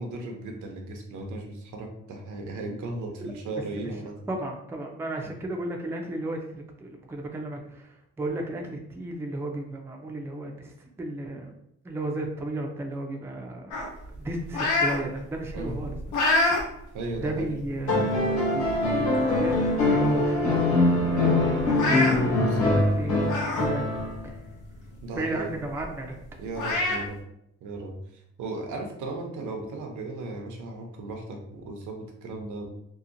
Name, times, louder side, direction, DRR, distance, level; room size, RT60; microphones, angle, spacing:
voice 1, 0.0-4.2 5.2-5.3 15.5-15.8 16.9-17.6 22.5-22.7 25.0-25.5 26.4-27.2 27.6-28.0 28.4-32.7, right 2 dB, 75° right, 2 dB, 0.6 m, -36 dB
voice 2, 4.3-11.5 11.8-16.0 17.1-24.4 25.1-26.1, right 2 dB, 10° right, 2 dB, 0.3 m, -34 dB
sound 1, 13.7-15.0 15.4-16.6 17.1-17.3 18.2-18.3 18.7-18.8 19.1-19.7 20.0-20.1 20.4-20.5 21.6-22.2 23.2-23.7 24.1-24.2 25.8-25.9 26.5-27.0, left 2 dB, 85° left, 0.7 m, -26 dB
sound 2, 17.9-24.3 25.8-25.9, left 2 dB, 70° left, 1.1 m, -23 dB
2.7 x 2.1 x 2.5 m, 0.76 s
cardioid pair, 90°, 30 cm